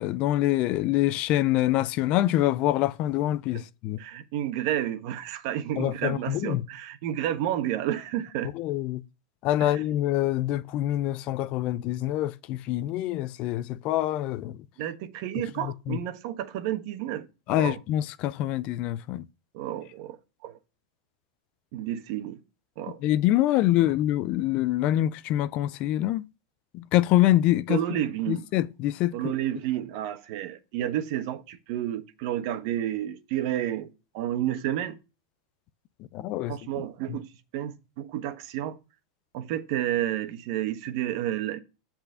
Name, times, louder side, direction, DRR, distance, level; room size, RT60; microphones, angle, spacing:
voice 1, 0.0-4.0 5.8-6.6 8.5-9.0 9.4-14.6 15.6-16.0 17.5-19.3 23.0-26.3 26.7-27.8 28.3-29.3 36.1-36.5 37.1-37.2, left 14 dB, 45° left, 0.5 m, -25 dB
voice 2, 4.0-8.5 9.6-9.8 14.8-17.8 19.5-20.2 20.4-20.6 21.7-22.4 22.8-23.0 27.7-28.4 29.1-35.0 36.5-38.8 39.3-41.6, right 12 dB, 60° right, 1.3 m, -31 dB
7.8 x 4.4 x 6.7 m
supercardioid pair, 125°, 3 cm